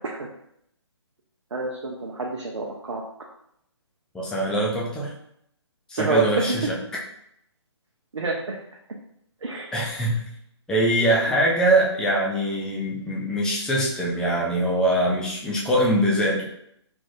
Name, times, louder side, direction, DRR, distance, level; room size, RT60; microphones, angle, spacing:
voice 1, 1.5-3.0 6.0-6.7 8.1-8.6 9.4-9.7 11.3-11.4, right 3 dB, 75° right, -1 dB, 0.7 m, -28 dB
voice 2, 4.1-5.1 5.9-6.7 9.7-10.2 10.7-16.5, right 1 dB, 5° left, -4 dB, 0.5 m, -23 dB
3.4 x 2.4 x 3.9 m, 0.73 s
figure-of-eight pair, 140°, 15 cm